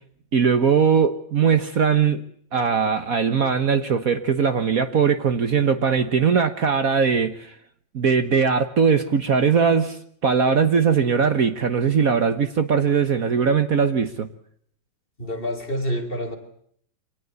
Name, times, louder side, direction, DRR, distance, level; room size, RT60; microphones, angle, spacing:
voice 1, 0.3-2.2 2.5-7.5 7.9-14.3, right 6 dB, 55° right, 10 dB, 1.5 m, -20 dB
voice 2, 15.2-16.4, equal, 30° left, 5 dB, 3.7 m, -27 dB
25.5 x 19.0 x 8.2 m, 0.65 s
omnidirectional pair, 1.9 m